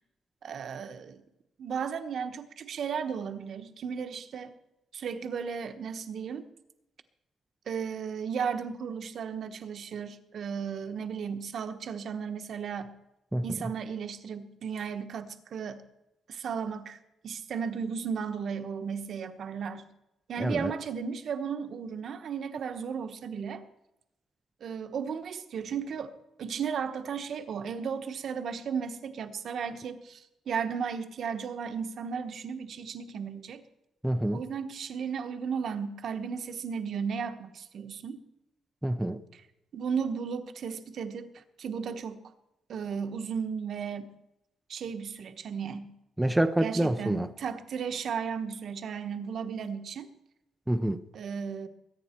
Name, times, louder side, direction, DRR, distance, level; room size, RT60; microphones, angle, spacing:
voice 1, 0.4-1.2 1.6-4.5 4.9-6.5 7.7-12.9 13.4-15.8 16.3-19.8 20.3-23.7 24.6-26.1 26.4-33.6 34.3-38.2 39.3-39.4 39.7-42.2 42.7-44.1 44.7-45.9 46.6-50.1 51.1-51.7, right 6 dB, 55° right, 1.1 m, -35 dB
voice 2, 20.4-20.7 34.0-34.4 38.8-39.2 46.2-47.3 50.7-51.0, right 1 dB, 5° right, 0.6 m, -27 dB
22.0 x 9.7 x 4.4 m
cardioid pair, 140°, 0 cm